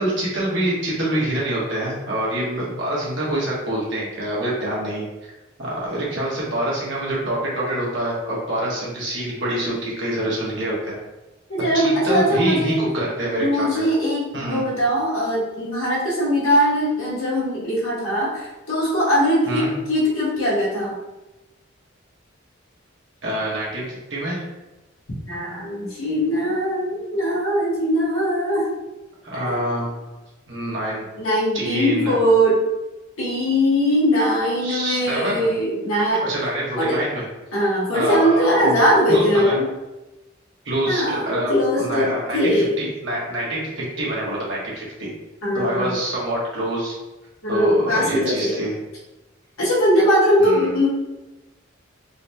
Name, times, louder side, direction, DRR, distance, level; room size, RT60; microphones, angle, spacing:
voice 1, 0.0-5.1 5.6-10.9 11.7-13.8 14.3-14.6 19.5-19.7 23.2-24.4 29.2-30.1 30.5-31.0 31.5-32.2 34.6-35.5 36.2-37.2 37.9-38.8 39.1-39.6 40.6-45.1 45.5-47.0 47.5-48.8 50.4-50.8, right 1 dB, 65° right, -5 dB, 1.2 m, -26 dB
voice 2, 11.5-12.8 13.4-20.9 25.3-28.7 29.4-29.6 31.2-32.6 33.2-36.2 36.8-37.0 37.5-39.6 40.9-42.7 45.4-45.9 47.4-48.5 49.6-50.9, equal, 90° left, -6 dB, 1.3 m, -20 dB
3.8 x 2.9 x 2.3 m, 1.0 s
head